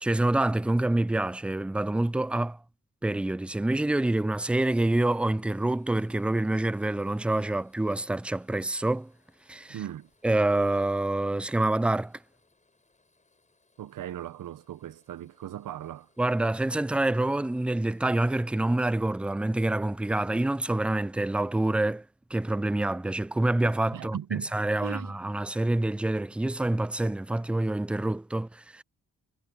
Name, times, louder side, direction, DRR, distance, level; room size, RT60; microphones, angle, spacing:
voice 1, 0.0-2.6 3.0-9.1 9.5-9.8 10.2-12.2 16.2-22.0 22.3-24.2 24.5-28.8, right 2 dB, 5° right, 0.3 m, -27 dB
sound 1, 4.5-19.3, left 3 dB, 20° left, 7.3 m, -69 dB
voice 2, 9.7-10.1 13.8-16.1 23.9-24.5 24.8-25.1, right 11 dB, 75° right, 0.8 m, -37 dB
wide cardioid pair, 130°, 33 cm